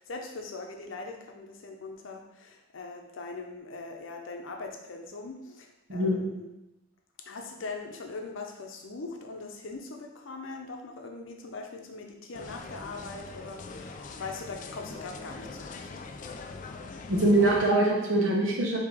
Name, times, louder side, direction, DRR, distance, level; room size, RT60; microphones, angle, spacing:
voice 1, 0.0-6.5 7.2-15.9, left 3 dB, 85° left, 2 dB, 0.7 m, -41 dB
voice 2, 5.9-6.2 17.1-18.8, right 1 dB, 85° right, -2 dB, 1.1 m, -23 dB
sound 1, 12.3-17.7, left 4 dB, 40° left, 0.3 m, -42 dB
4.9 x 2.8 x 3.5 m, 0.95 s
head